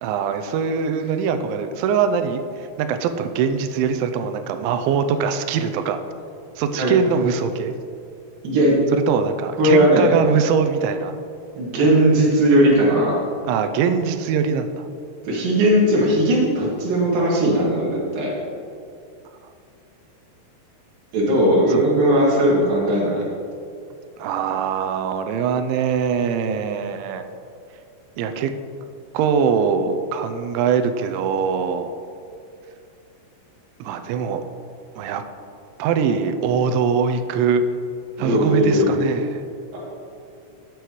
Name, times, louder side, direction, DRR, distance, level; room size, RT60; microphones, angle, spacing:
voice 1, 0.0-6.0 6.6-7.7 8.9-11.1 13.4-14.9 21.7-21.9 24.2-27.2 28.2-28.5 29.1-31.9 33.8-34.4 35.0-35.2 35.8-37.6 38.2-39.4, right 6 dB, 90° right, 8 dB, 3.0 m, -22 dB
voice 2, 8.4-8.8 9.6-10.1 11.6-13.2 15.2-18.3 21.1-23.2 38.2-38.9 39.7-39.8, right 1 dB, 55° right, -4 dB, 3.4 m, -18 dB
12.5 x 8.6 x 3.1 m, 2.6 s
omnidirectional pair, 5.3 m